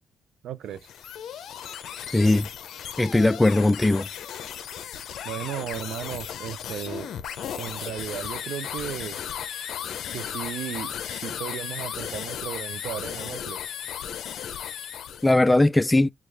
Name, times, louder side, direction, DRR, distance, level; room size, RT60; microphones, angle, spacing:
voice 1, 0.4-0.9 5.2-7.1 7.6-9.2 10.1-13.7, right 11 dB, 75° right, 0.4 m, -35 dB
sound 1, 0.7-15.3, left 9 dB, 70° left, 0.5 m, -35 dB
voice 2, 2.1-2.5 3.0-4.1 15.2-16.1, left 2 dB, 15° left, 0.3 m, -19 dB
4.5 x 2.4 x 3.2 m
cardioid pair, 90°, 0 cm